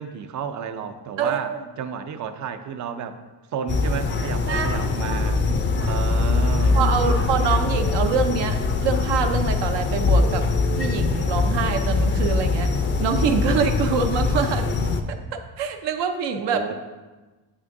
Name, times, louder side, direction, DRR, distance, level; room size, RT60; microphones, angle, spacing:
voice 1, 0.0-3.2 3.5-5.4 5.8-7.5 16.4-16.7, right 7 dB, 40° right, 10 dB, 0.5 m, -32 dB
voice 2, 1.2-1.6 4.4-5.6 6.7-10.4 10.8-12.7 13.0-14.7 15.1-16.7, right 6 dB, 70° right, 6 dB, 0.8 m, -25 dB
sound 1, 3.7-15.0, left 3 dB, 25° left, 0.5 m, -22 dB
8.2 x 6.1 x 2.6 m, 1.2 s
cardioid pair, 110°, 44 cm